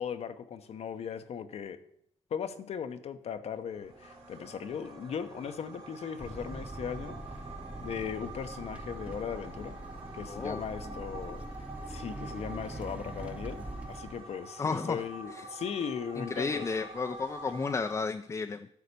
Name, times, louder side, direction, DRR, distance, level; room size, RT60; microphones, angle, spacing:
voice 1, 0.0-1.8 2.3-7.4 7.8-9.7 10.1-11.4 11.9-16.7, left 7 dB, 60° left, 9 dB, 0.8 m, -38 dB
sound 1, 3.6-18.0, right 3 dB, 55° right, 3.1 m, -47 dB
sound 2, 6.2-14.2, right 1 dB, 10° right, 1.0 m, -43 dB
voice 2, 10.3-10.9 14.6-15.0 15.3-15.4 16.2-18.7, left 4 dB, 25° left, 7 dB, 0.5 m, -33 dB
11.5 x 4.2 x 6.7 m, 0.70 s
cardioid pair, 80°, 12 cm